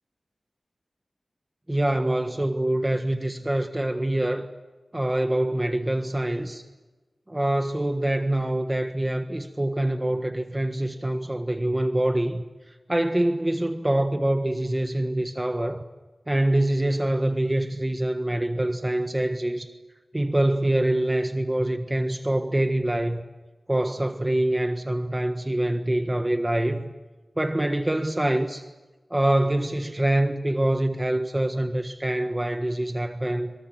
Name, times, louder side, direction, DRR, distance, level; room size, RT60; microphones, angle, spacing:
voice 1, 1.7-4.5 4.9-6.6 7.3-12.4 12.9-15.8 16.3-19.7 20.1-23.2 23.7-26.9 27.4-28.7 29.1-33.5, right 1 dB, 20° right, 1.4 m, -25 dB
26.0 x 23.5 x 7.5 m
wide cardioid pair, 60°, 0 cm